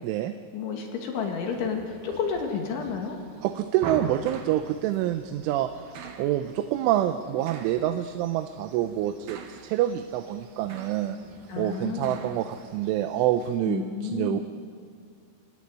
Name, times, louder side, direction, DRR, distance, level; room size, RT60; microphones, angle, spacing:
voice 1, 0.5-3.2 11.5-12.2 13.7-14.4, left 6 dB, 75° left, 2 dB, 4.5 m, -31 dB
sound 1, 1.1-13.6, right 5 dB, 60° right, 3.3 m, -43 dB
voice 2, 3.4-11.2 11.6-14.4, right 12 dB, 85° right, 8 dB, 3.2 m, -27 dB
26.0 x 21.0 x 9.5 m, 2.2 s
omnidirectional pair, 5.5 m